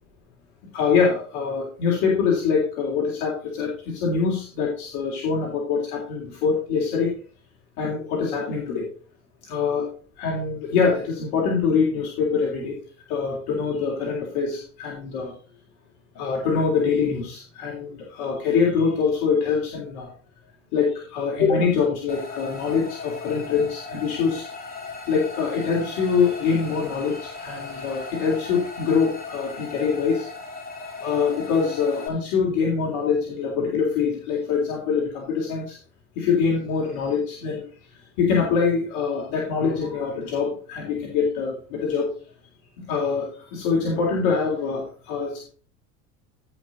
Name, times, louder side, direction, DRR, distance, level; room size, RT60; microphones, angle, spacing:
voice 1, 0.7-7.1 7.8-8.9 9.4-9.9 10.2-12.8 13.1-15.3 16.1-20.1 20.7-24.5 25.1-30.3 31.0-35.8 36.1-37.6 38.2-42.1 42.9-45.5, left 5 dB, 50° left, -1 dB, 3.4 m, -24 dB
sound 1, 22.1-32.1, left 3 dB, 20° left, 3.9 m, -37 dB
16.5 x 5.8 x 4.0 m, 0.40 s
figure-of-eight pair, 70°, 44 cm